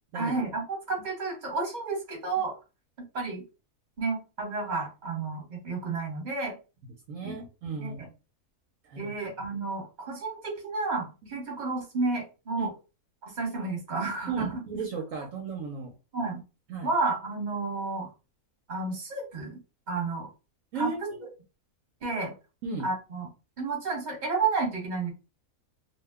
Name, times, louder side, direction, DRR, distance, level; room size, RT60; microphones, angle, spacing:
voice 1, 0.1-2.6 3.1-3.4 4.0-6.5 7.2-7.3 7.8-8.1 9.0-12.7 13.2-14.6 16.1-16.4 16.8-18.1 18.7-19.6 19.9-20.3 20.8-20.9 22.0-22.3 22.8-23.3 23.6-25.1, right 3 dB, 35° right, 0 dB, 1.1 m, -31 dB
voice 2, 7.1-8.0 8.9-9.1 12.6-12.7 14.3-15.9 16.7-16.9 20.7-21.2 22.6-22.9, right 4 dB, 70° right, 0 dB, 1.1 m, -35 dB
2.6 x 2.2 x 3.5 m, 0.31 s
omnidirectional pair, 1.5 m